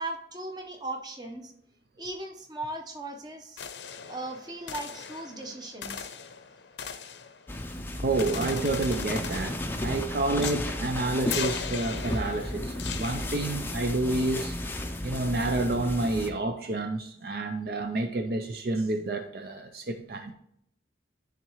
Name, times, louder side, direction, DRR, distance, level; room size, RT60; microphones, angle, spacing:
voice 1, 0.0-1.5 2.0-3.6 4.1-6.1, right 2 dB, 20° right, 0.9 m, -38 dB
sound 1, 3.6-7.7 8.2-9.7 10.4-10.7 11.3-13.8, left 7 dB, 75° left, 0.6 m, -38 dB
sound 2, 7.5-16.3, left 1 dB, 10° left, 0.4 m, -34 dB
voice 2, 8.0-14.6 15.0-20.3, right 2 dB, 55° right, 0.4 m, -29 dB
10.5 x 3.6 x 3.0 m
head